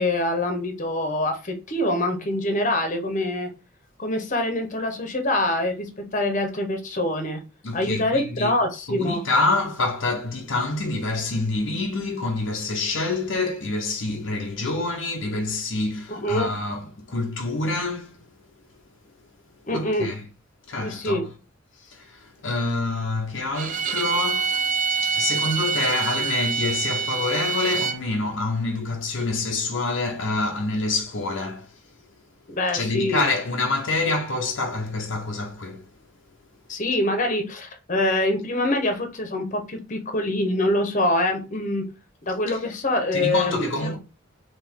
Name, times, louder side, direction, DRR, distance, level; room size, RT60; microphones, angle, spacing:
voice 1, 0.0-3.5 4.0-7.4 7.7-9.2 16.1-16.5 19.7-20.1 20.8-21.2 32.5-33.3 36.7-41.8 42.2-44.0, left 1 dB, 40° left, 1.0 m, -25 dB
voice 2, 7.6-8.6 8.9-18.2 19.7-20.2 20.7-21.3 21.8-24.7 25.0-31.7 32.7-35.8 42.5-42.6 43.1-44.0, left 2 dB, 65° left, 0.7 m, -27 dB
Bowed string instrument, 23.5-28.0, right 6 dB, 40° right, 0.5 m, -25 dB
4.6 x 3.0 x 3.6 m
head